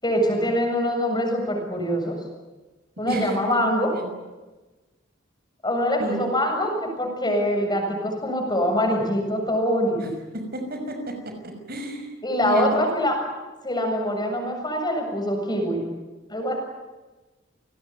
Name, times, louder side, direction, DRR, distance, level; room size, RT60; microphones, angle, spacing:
voice 1, 0.0-2.2 3.0-3.9 5.6-10.1 12.2-13.2 13.6-15.8 16.3-16.6, equal, 20° left, 3 dB, 7.4 m, -24 dB
voice 2, 10.3-12.1 12.4-12.8, right 1 dB, 50° right, 5 dB, 5.9 m, -30 dB
28.5 x 19.5 x 9.6 m, 1.2 s
head